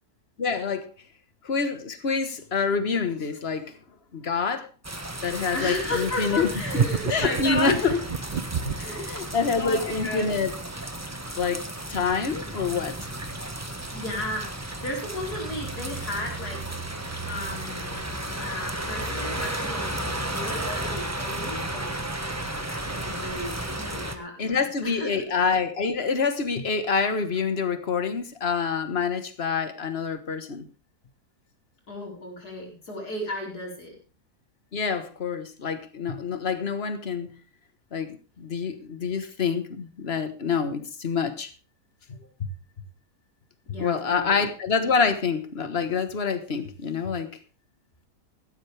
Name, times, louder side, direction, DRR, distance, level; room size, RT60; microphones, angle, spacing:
voice 1, 0.4-0.9 1.4-3.7 4.1-4.7 5.2-6.5 6.7-8.0 8.6-10.5 11.3-11.6 11.9-12.9 24.4-30.6 34.7-37.3 37.9-41.5 42.1-42.5 43.8-47.3, left 5 dB, 40° left, 1.5 m, -27 dB
sound 1, 4.8-24.2, right 1 dB, 10° right, 1.2 m, -33 dB
voice 2, 5.5-7.9 8.7-9.2 9.6-10.4 13.9-16.6 17.2-18.0 18.4-25.3 31.9-33.9 43.7-44.4, left 1 dB, 75° left, 5.0 m, -34 dB
sound 2, 6.7-9.0, right 7 dB, 65° right, 0.4 m, -27 dB
15.0 x 13.0 x 3.4 m
omnidirectional pair, 1.7 m